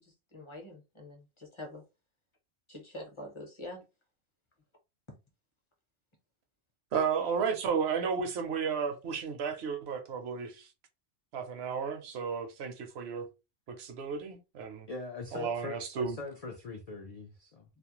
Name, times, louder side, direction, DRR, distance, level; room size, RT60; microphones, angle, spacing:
voice 1, 0.3-1.8 2.7-3.8, left 1 dB, 30° left, 0.6 m, -45 dB
voice 2, 6.9-10.7 11.3-13.3 13.7-14.9 15.3-16.2, right 6 dB, 65° right, 0.8 m, -33 dB
voice 3, 14.9-17.6, left 3 dB, 90° left, 0.3 m, -42 dB
2.4 x 2.1 x 2.9 m
omnidirectional pair, 1.3 m